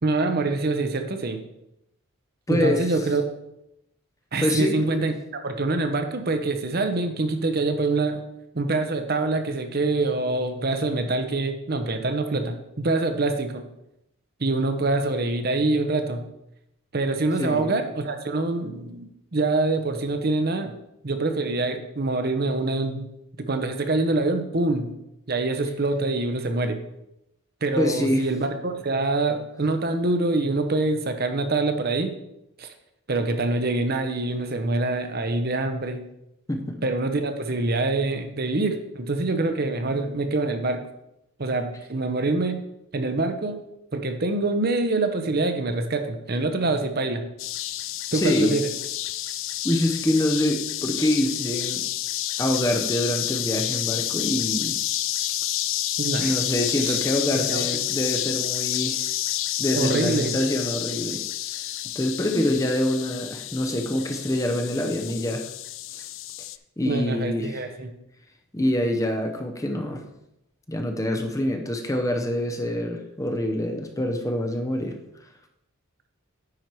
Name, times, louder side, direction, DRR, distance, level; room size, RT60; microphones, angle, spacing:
voice 1, 0.0-1.4 2.5-3.2 4.3-5.1 5.4-8.2 8.5-13.7 14.4-16.3 16.9-20.7 21.0-23.1 23.4-24.9 25.3-26.8 27.6-32.1 32.6-32.7 33.1-36.0 36.8-40.8 41.4-42.6 42.9-43.6 43.9-47.3 48.1-48.7 56.0-56.4 56.8-57.0 57.3-57.6 59.7-60.3 66.8-67.9, right 2 dB, 45° right, 7 dB, 0.7 m, -25 dB
voice 2, 2.5-2.9 4.4-4.9 17.4-17.7 27.8-28.2 36.5-36.8 48.1-48.5 49.6-51.8 52.4-54.8 56.2-59.1 59.6-61.2 61.9-65.5 65.9-66.1 66.8-67.6 68.5-70.0 70.7-74.9, left 1 dB, 15° left, 4 dB, 0.7 m, -25 dB
sound 1, 47.4-66.6, left 13 dB, 60° left, 0.4 m, -29 dB
9.7 x 4.5 x 4.7 m, 0.84 s
head